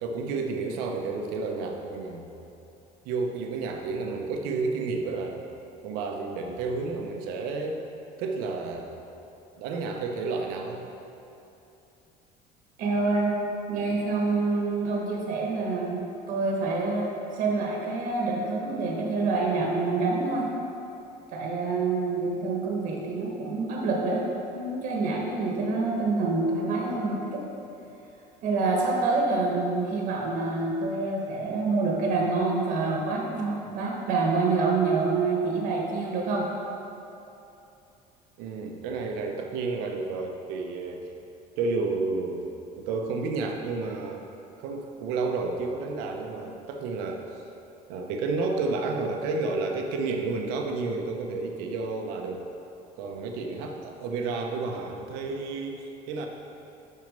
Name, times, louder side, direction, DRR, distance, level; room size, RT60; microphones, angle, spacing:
voice 1, 0.0-2.3 3.0-5.4 5.8-7.8 8.2-8.9 9.6-10.8 38.4-41.1 41.6-42.5 42.8-44.2 44.6-47.4 47.9-52.5 53.0-56.3, right 3 dB, 90° right, 2 dB, 0.9 m, -31 dB
voice 2, 12.8-13.4 13.7-16.0 16.3-20.4 21.3-24.2 24.5-27.4 28.4-36.5, right 3 dB, 55° right, -2 dB, 1.3 m, -27 dB
6.4 x 5.7 x 5.2 m, 2.9 s
cardioid pair, 155°, 16 cm